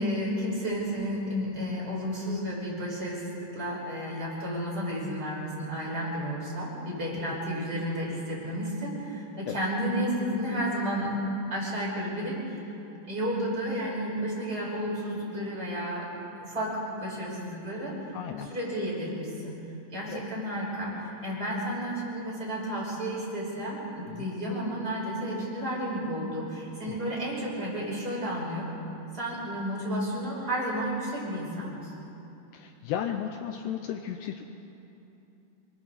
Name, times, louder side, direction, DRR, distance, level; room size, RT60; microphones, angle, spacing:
voice 1, 0.0-11.1 11.5-12.6 13.1-16.1 16.4-17.9 18.5-19.6 19.9-28.8 29.1-31.9, equal, 20° right, -6 dB, 5.8 m, -32 dB
voice 2, 18.1-18.5 20.1-20.2 24.1-24.3 26.9-27.0 32.5-34.4, left 9 dB, 90° left, 6 dB, 2.3 m, -34 dB
27.0 x 24.0 x 4.2 m, 2.9 s
omnidirectional pair, 5.7 m